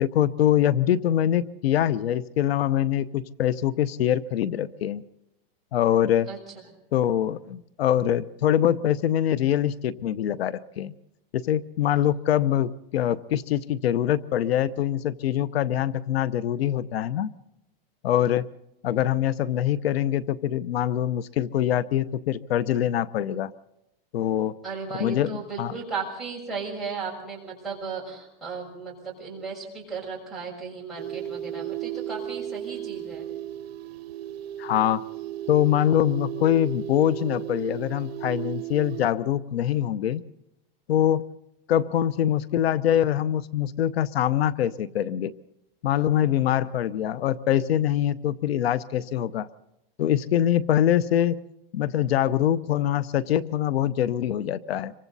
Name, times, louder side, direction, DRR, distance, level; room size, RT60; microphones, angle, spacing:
voice 1, 0.0-5.0 5.7-6.3 6.9-10.9 11.3-17.3 18.0-18.5 18.8-23.5 24.1-24.5 24.9-25.7 34.6-35.0 35.5-40.2 40.9-41.2 41.7-45.3 45.8-49.5 50.0-51.4 51.7-54.9, left 11 dB, 80° left, 17 dB, 0.9 m, -24 dB
voice 2, 24.6-33.2, right 5 dB, ahead, -7 dB, 6.6 m, -35 dB
sound 1, 31.0-39.1, right 12 dB, 85° right, 0.9 m, -35 dB
26.5 x 24.0 x 4.1 m, 0.84 s
supercardioid pair, 170°, 30 cm